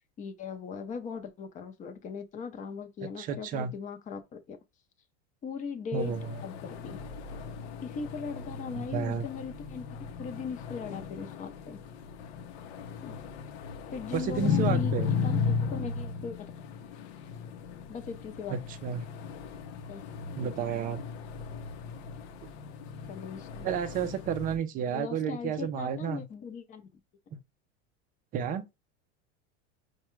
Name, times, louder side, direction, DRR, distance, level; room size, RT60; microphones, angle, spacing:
voice 1, 0.2-4.6 5.4-6.1 6.4-7.0 7.8-11.8 13.0-13.2 13.9-14.9 15.2-16.5 17.9-18.6 19.9-20.0 23.1-23.7 24.9-26.9, left 6 dB, 25° left, 0.6 m, -39 dB
voice 2, 3.2-3.7 5.9-6.4 8.7-9.3 14.1-15.1 18.5-19.1 20.3-21.0 23.6-26.2 27.3-27.4 28.3-28.7, right 8 dB, 25° right, 0.4 m, -32 dB
sound 1, 6.0-24.6, left 6 dB, 70° left, 0.7 m, -36 dB
4.6 x 2.3 x 3.1 m
supercardioid pair, 135°, 33 cm